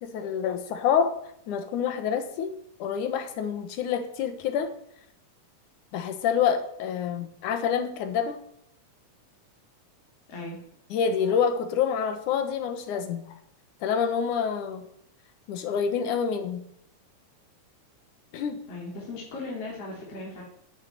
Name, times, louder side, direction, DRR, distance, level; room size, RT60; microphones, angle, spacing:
voice 1, 0.0-1.1 1.5-2.5 2.8-4.7 5.9-8.4 10.9-13.2 13.8-14.9 15.5-16.6 18.3-18.6, left 7 dB, 80° left, 9 dB, 2.9 m, -27 dB
voice 2, 18.7-20.4, left 2 dB, 50° left, -3 dB, 3.9 m, -37 dB
11.5 x 8.3 x 9.4 m, 0.73 s
omnidirectional pair, 3.5 m